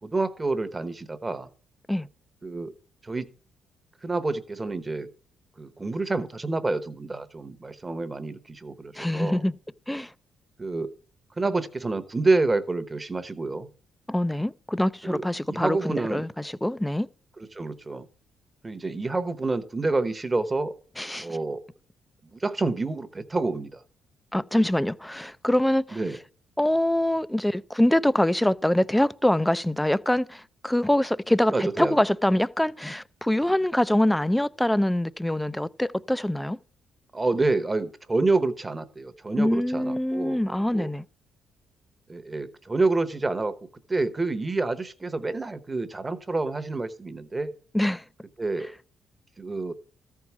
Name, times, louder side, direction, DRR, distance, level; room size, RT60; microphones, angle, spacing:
voice 1, 0.0-1.5 2.4-2.7 3.0-3.3 4.0-5.1 5.6-9.4 10.6-10.9 11.4-13.7 15.0-15.2 15.5-16.2 17.5-18.1 18.6-20.7 21.2-21.6 22.3-23.8 25.9-26.2 31.5-32.0 37.1-40.9 42.1-43.6 43.9-47.5 48.4-48.7 49.4-49.7, right 3 dB, 20° right, 0.9 m, -28 dB
voice 2, 9.0-9.5 9.9-10.1 14.1-17.1 21.0-21.3 24.3-26.0 26.6-36.6 39.4-41.0 47.7-48.0, left 1 dB, 5° left, 0.4 m, -24 dB
13.5 x 4.7 x 7.1 m
cardioid pair, 90°, 0 cm